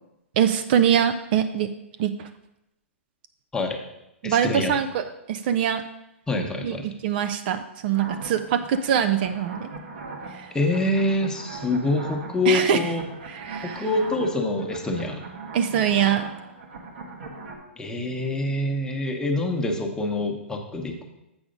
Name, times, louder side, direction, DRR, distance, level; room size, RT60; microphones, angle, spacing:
voice 1, 0.4-1.7 2.0-2.3 4.2-5.8 6.6-9.7 12.5-12.8 13.3-13.8 15.5-16.3, right 9 dB, 45° right, 9 dB, 0.4 m, -23 dB
voice 2, 4.2-4.8 6.3-6.9 10.5-13.0 13.6-15.2 17.8-21.1, left 2 dB, 10° left, 3 dB, 0.9 m, -26 dB
sound 1, 7.9-17.6, right 3 dB, 65° right, 1.3 m, -40 dB
7.8 x 4.8 x 5.2 m, 0.88 s
hypercardioid pair, 120°, 7 cm